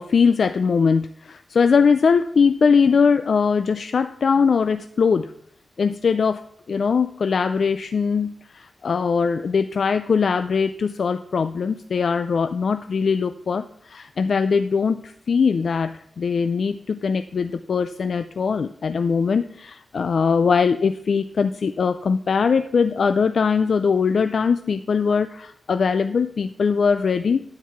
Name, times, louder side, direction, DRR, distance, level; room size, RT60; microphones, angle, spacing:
voice 1, 0.0-5.3 5.8-27.4, left 5 dB, 70° left, 10 dB, 0.3 m, -21 dB
13.0 x 4.7 x 5.7 m, 0.68 s
wide cardioid pair, 100°, 0 cm